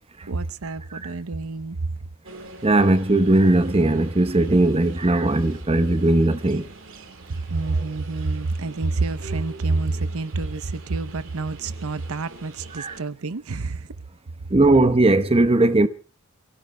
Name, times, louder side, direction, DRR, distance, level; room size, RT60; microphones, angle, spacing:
voice 1, 0.3-1.8 7.3-13.9, right 3 dB, 80° right, 0.7 m, -28 dB
sound 1, 2.2-13.0, right 3 dB, 65° right, 2.6 m, -45 dB
voice 2, 2.6-6.6 12.8-13.0 14.5-15.9, right 2 dB, 25° right, 0.9 m, -18 dB
28.5 x 17.0 x 2.3 m
head